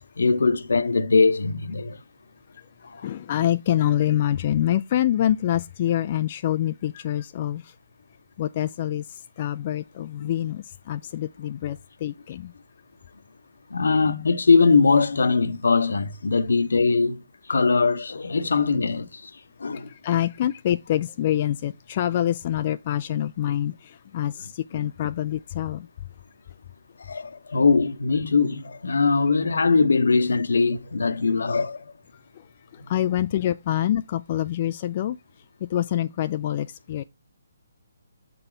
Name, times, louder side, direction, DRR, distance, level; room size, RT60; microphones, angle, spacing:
voice 1, 0.2-2.0 2.8-3.1 13.7-17.2 17.5-19.3 19.6-19.9 24.7-24.9 27.1-31.9, left 4 dB, 80° left, 0.9 m, -21 dB
voice 2, 3.0-7.7 8.4-12.5 19.7-25.9 32.3-32.4 32.7-35.2 35.7-37.0, left 12 dB, 40° left, 0.3 m, -26 dB
6.6 x 4.1 x 4.3 m
hypercardioid pair, 150°, 0 cm